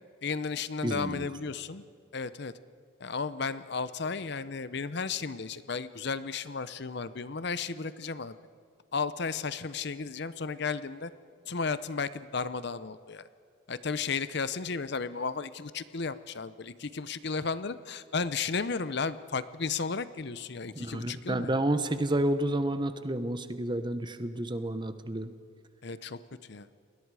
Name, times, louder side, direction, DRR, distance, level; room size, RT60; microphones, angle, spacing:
voice 1, 0.2-1.8 2.1-2.5 3.0-8.4 8.9-11.1 11.5-13.2 13.7-21.5 25.8-26.2 26.5-26.7, left 5 dB, 55° left, 14 dB, 0.7 m, -34 dB
voice 2, 0.8-1.3 20.7-25.3, right 1 dB, 25° right, 10 dB, 1.0 m, -30 dB
29.5 x 21.0 x 4.9 m, 2.3 s
head